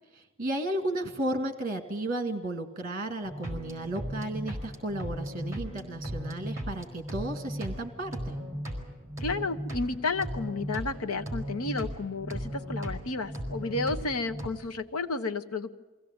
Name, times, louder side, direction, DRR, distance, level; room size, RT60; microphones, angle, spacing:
voice 1, 0.4-8.4, right 1 dB, 40° right, 7 dB, 2.0 m, -33 dB
sound 1, 3.2-14.5, equal, 15° right, 4.0 m, -37 dB
voice 2, 9.2-15.7, left 3 dB, 75° left, 9 dB, 1.1 m, -32 dB
23.5 x 16.5 x 8.8 m, 1.2 s
head